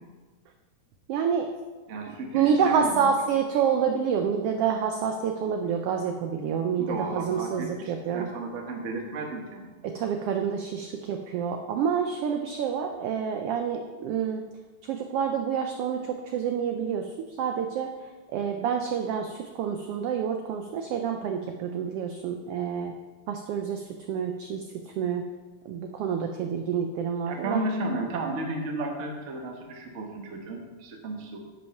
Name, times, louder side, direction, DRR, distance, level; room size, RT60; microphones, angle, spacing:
voice 1, 1.1-1.5 2.3-8.3 9.8-14.5 14.8-22.9 23.3-25.3 25.6-27.6, right 7 dB, 85° right, 4 dB, 1.3 m, -28 dB
voice 2, 1.9-3.1 6.8-9.8 27.3-31.4, right 2 dB, 55° right, 1 dB, 0.8 m, -33 dB
10.5 x 5.4 x 5.8 m, 1.3 s
omnidirectional pair, 3.4 m